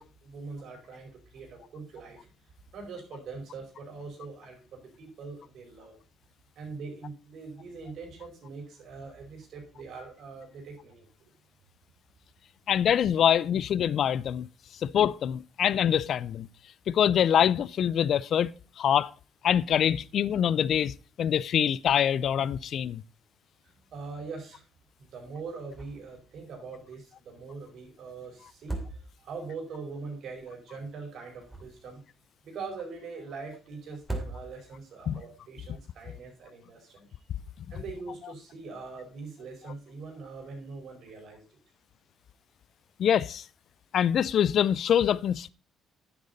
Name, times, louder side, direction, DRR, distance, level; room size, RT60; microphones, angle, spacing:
voice 1, 0.0-6.0 6.5-11.3 23.6-24.6 25.0-32.0 32.4-37.1 37.7-41.6, right 4 dB, 65° right, 4.7 m, -42 dB
voice 2, 12.7-14.5 14.8-16.5 16.9-18.5 18.8-19.1 19.4-20.9 21.2-23.0 35.1-35.2 43.0-43.4 43.9-45.5, left 9 dB, 60° left, 0.4 m, -24 dB
sound 1, 25.7-26.2 26.5-26.6 28.5-29.5 31.2-32.1 33.9-34.9, right 2 dB, 10° right, 2.8 m, -38 dB
10.0 x 7.9 x 4.1 m
cardioid pair, 90°, 0 cm